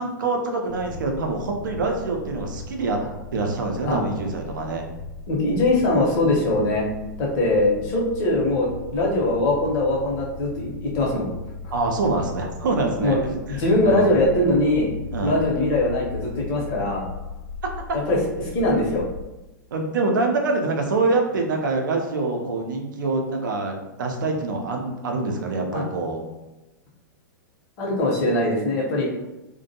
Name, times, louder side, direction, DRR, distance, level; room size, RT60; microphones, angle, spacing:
voice 1, 0.0-3.0 3.3-4.9 11.7-13.2 13.5-14.1 15.1-15.4 17.9-18.0 19.7-26.2, right 3 dB, 70° right, 3 dB, 0.5 m, -25 dB
sound 1, 0.7-19.2, left 4 dB, 85° left, 0.7 m, -37 dB
voice 2, 5.3-6.9 7.2-11.3 11.6-11.7 13.0-13.2 13.5-14.9 15.2-17.1 17.9-19.0 25.7-25.8 27.8-29.0, left 1 dB, 45° left, -2 dB, 0.8 m, -22 dB
2.4 x 2.2 x 2.7 m, 1.0 s
figure-of-eight pair, 105°, 11 cm